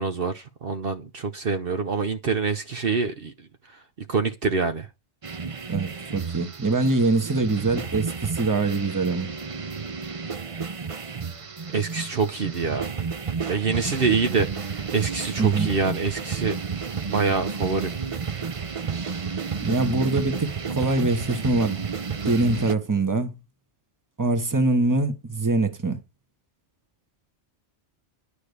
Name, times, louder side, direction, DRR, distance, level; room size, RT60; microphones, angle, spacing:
voice 1, 0.0-3.8 4.1-4.9 11.7-12.9 13.5-16.6 17.1-17.9, right 4 dB, 55° right, 1.0 m, -26 dB
sound 1, 5.2-22.7, right 5 dB, 35° right, 0.6 m, -31 dB
voice 2, 5.7-9.3 15.4-15.7 19.6-21.9 22.2-23.3 24.2-26.0, right 2 dB, 15° right, 1.2 m, -23 dB
11.5 x 5.1 x 8.2 m
omnidirectional pair, 1.2 m